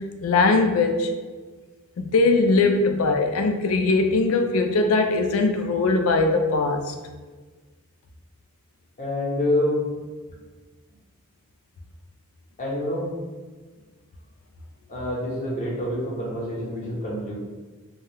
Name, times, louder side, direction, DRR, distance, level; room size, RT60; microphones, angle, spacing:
voice 1, 0.2-1.1 2.0-6.9, left 3 dB, 65° left, 5 dB, 0.3 m, -20 dB
voice 2, 9.0-9.8 12.6-13.1 14.9-17.3, left 1 dB, 35° left, -5 dB, 0.9 m, -27 dB
2.7 x 2.3 x 3.3 m, 1.3 s
head